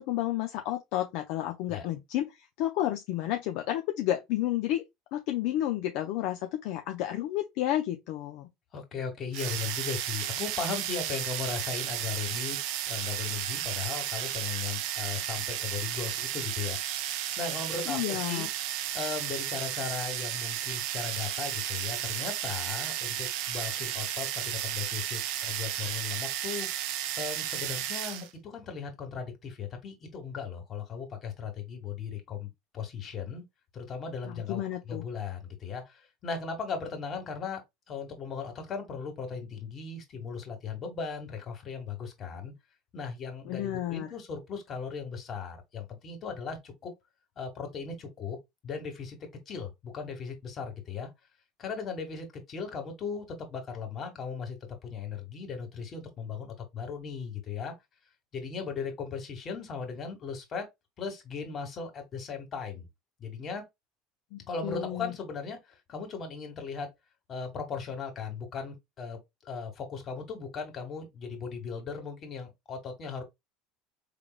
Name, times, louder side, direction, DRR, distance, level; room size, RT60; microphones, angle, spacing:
voice 1, 0.0-2.3 2.6-4.8 5.1-8.5 17.9-18.5 34.2-35.0 43.5-44.1 64.3-65.1, left 13 dB, 65° left, 0.6 m, -31 dB
voice 2, 8.7-12.6 12.9-17.0 17.4-18.5 18.9-26.7 27.2-33.4 33.7-42.5 42.9-46.9 47.4-48.4 48.6-51.1 51.6-54.6 54.8-57.7 58.3-60.7 61.0-62.9 63.2-63.6 64.5-66.9 67.3-73.2, left 5 dB, 40° left, 2.1 m, -37 dB
sound 1, 9.3-28.3, right 11 dB, 65° right, 0.6 m, -33 dB
4.9 x 3.4 x 2.4 m
hypercardioid pair, 70°, 0 cm